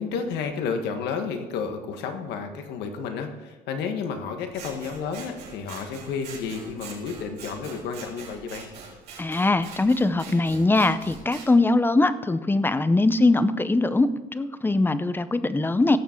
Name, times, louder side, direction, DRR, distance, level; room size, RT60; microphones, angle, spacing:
voice 1, 0.0-8.7, left 5 dB, 85° left, 6 dB, 1.5 m, -31 dB
Scissors, 4.5-11.5, right 4 dB, 80° right, 4.2 m, -43 dB
voice 2, 9.2-16.0, left 2 dB, 10° left, 13 dB, 0.6 m, -21 dB
17.5 x 7.2 x 4.5 m, 1.2 s
cardioid pair, 110°, 17 cm